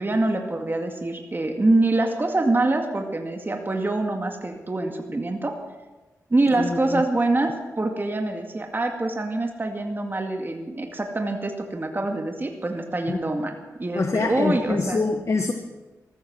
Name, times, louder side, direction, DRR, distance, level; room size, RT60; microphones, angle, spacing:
voice 1, 0.0-5.5 6.3-15.0, right 2 dB, 35° right, 3 dB, 2.2 m, -25 dB
voice 2, 6.6-7.0 13.1-13.2 13.9-15.5, left 3 dB, 50° left, 6 dB, 1.2 m, -25 dB
14.5 x 14.0 x 6.1 m, 1.2 s
cardioid pair, 50°, 6 cm